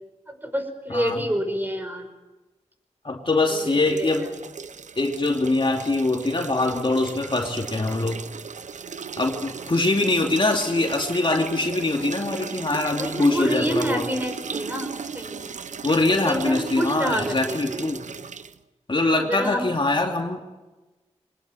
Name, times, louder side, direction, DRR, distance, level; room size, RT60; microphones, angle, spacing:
voice 1, 0.3-2.1 3.4-4.3 13.0-15.5 16.3-17.9 19.2-19.7, equal, 15° right, 5 dB, 5.6 m, -28 dB
voice 2, 0.9-1.2 3.0-4.3 5.0-8.2 9.2-14.1 15.8-18.1 18.9-20.4, left 2 dB, 45° left, 2 dB, 2.9 m, -23 dB
sound 1, 3.4-18.6, right 6 dB, 90° right, 0.8 m, -36 dB
23.0 x 20.5 x 9.3 m, 1.1 s
wide cardioid pair, 60°, 12 cm